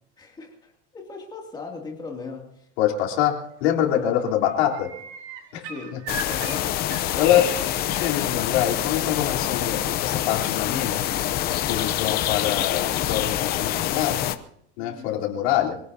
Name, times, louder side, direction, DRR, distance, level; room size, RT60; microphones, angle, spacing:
voice 1, 0.2-2.7 3.9-4.4 5.7-6.6 14.8-15.2, left 4 dB, 10° left, 0 dB, 2.6 m, -39 dB
voice 2, 2.8-4.9 5.5-5.6 7.1-7.5 7.9-11.0 11.7-14.2 14.8-15.8, left 11 dB, 70° left, 0 dB, 3.7 m, -24 dB
sound 1, 3.6-3.9 4.2-8.3 9.9-10.0, right 3 dB, 80° right, 3.9 m, -39 dB
sound 2, 6.1-14.3, left 12 dB, 30° left, 0.7 m, -26 dB
25.5 x 17.5 x 2.8 m, 0.71 s
supercardioid pair, 170°, 34 cm